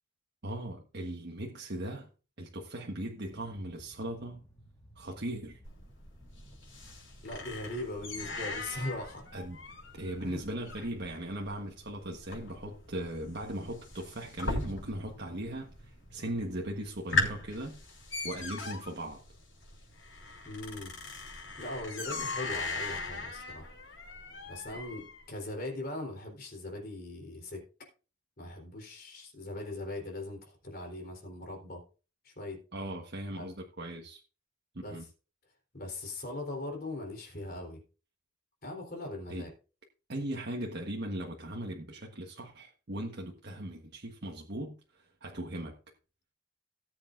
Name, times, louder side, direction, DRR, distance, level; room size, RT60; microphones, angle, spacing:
voice 1, 0.4-2.1 2.4-4.5 4.9-5.6 9.3-9.6 9.9-17.7 18.2-19.2 22.1-22.3 32.7-34.2 34.9-35.0 39.3-39.5 40.1-45.7, right 1 dB, 55° right, 1.4 m, -38 dB
sound 1, 3.2-21.6, equal, 15° left, 3.0 m, -58 dB
sound 2, 5.6-15.2 15.5-16.1 16.5-16.6 16.9-25.2, left 3 dB, 85° left, 5.3 m, -38 dB
voice 2, 7.2-9.2 10.2-10.4 20.4-20.9 21.6-23.7 24.5-27.6 28.4-31.8 32.2-32.6 33.3-33.5 34.8-35.0 35.7-37.8 38.6-39.5, left 2 dB, 50° left, 3.7 m, -40 dB
18.5 x 7.9 x 2.6 m
head